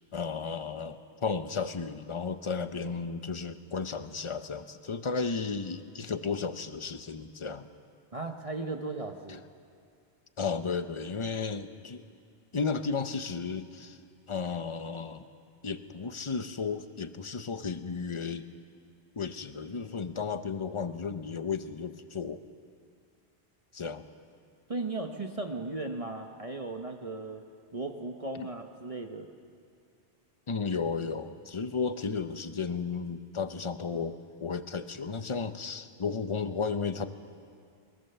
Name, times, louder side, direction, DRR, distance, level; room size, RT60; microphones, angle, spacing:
voice 1, 0.1-7.7 10.4-12.0 12.5-14.0 14.3-15.3 15.6-18.5 19.2-22.4 23.7-24.0 28.4-28.5 30.5-37.1, left 5 dB, 30° left, 10 dB, 0.8 m, -34 dB
voice 2, 8.1-9.4 24.7-27.4 27.7-29.3, right 2 dB, 35° right, 4 dB, 1.1 m, -36 dB
21.5 x 21.5 x 6.9 m, 2.3 s
omnidirectional pair, 1.1 m